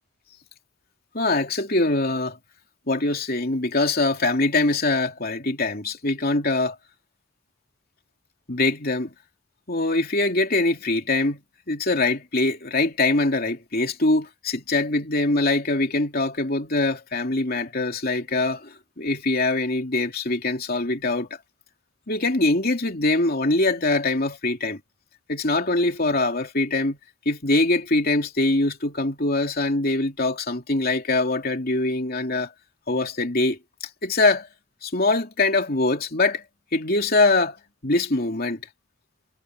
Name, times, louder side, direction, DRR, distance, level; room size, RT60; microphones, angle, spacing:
voice 1, 1.1-2.4 2.9-6.8 8.5-9.1 9.7-11.4 11.7-21.4 22.1-24.8 25.3-27.0 27.2-32.5 32.9-34.5 34.8-36.4 36.7-37.6 37.8-38.6, left 2 dB, 45° left, 3.1 m, -23 dB
head